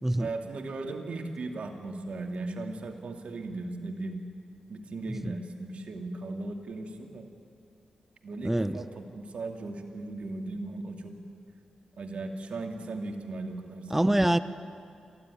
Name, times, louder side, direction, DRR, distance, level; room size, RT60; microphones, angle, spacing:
voice 1, 0.2-4.2 4.7-7.3 8.2-11.1 12.0-14.3, right 2 dB, 70° right, 3 dB, 2.5 m, -37 dB
voice 2, 8.4-8.8 13.9-14.4, right 1 dB, 10° right, 13 dB, 0.8 m, -25 dB
23.5 x 15.5 x 9.8 m, 2.4 s
cardioid pair, 60°, 2 cm